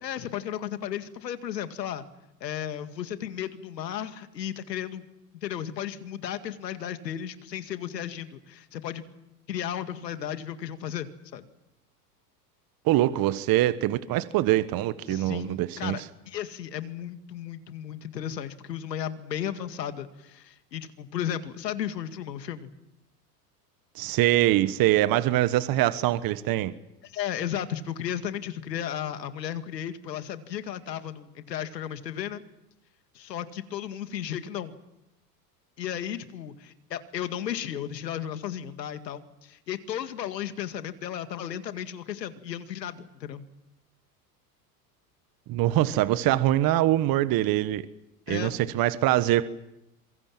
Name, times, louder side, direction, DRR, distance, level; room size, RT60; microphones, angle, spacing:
voice 1, 0.0-2.0 2.4-5.1 5.4-9.0 9.5-11.4 15.1-22.7 27.0-32.4 33.1-34.8 35.8-43.4 48.3-48.5, left 10 dB, 85° left, 2.2 m, -34 dB
voice 2, 12.8-16.0 23.9-26.7 45.5-47.8 48.3-49.4, right 14 dB, 45° right, 1.3 m, -23 dB
26.5 x 23.5 x 7.5 m
hypercardioid pair, 90°, 49 cm